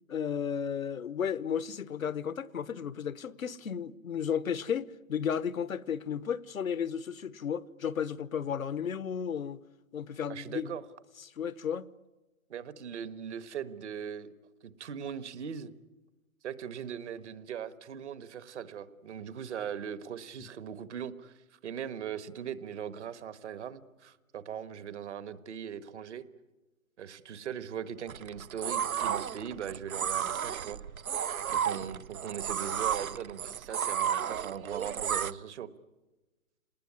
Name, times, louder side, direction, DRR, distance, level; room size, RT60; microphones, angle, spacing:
voice 1, 0.1-9.6 9.9-10.8 11.2-11.9 20.4-20.5, left 8 dB, 80° left, 1.0 m, -34 dB
voice 2, 10.3-10.8 12.5-14.3 14.6-15.7 16.4-26.2 27.0-30.8 31.5-35.7, right 8 dB, 55° right, 1.4 m, -40 dB
sound 1, 28.1-35.3, right 8 dB, 90° right, 0.8 m, -33 dB
27.5 x 19.5 x 9.7 m
hypercardioid pair, 145°, 41 cm